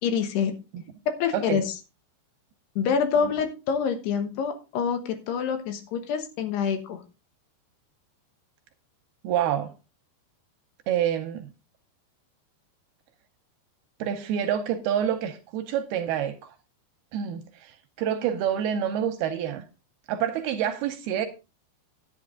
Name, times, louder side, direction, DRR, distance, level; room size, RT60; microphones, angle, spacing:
voice 1, 0.0-0.5 1.1-1.7 2.8-7.0, left 6 dB, 75° left, 3.2 m, -26 dB
voice 2, 9.2-9.7 10.9-11.5 14.0-16.5 17.1-19.6 20.1-21.3, right 9 dB, 80° right, 2.4 m, -27 dB
10.5 x 9.4 x 3.7 m
omnidirectional pair, 5.0 m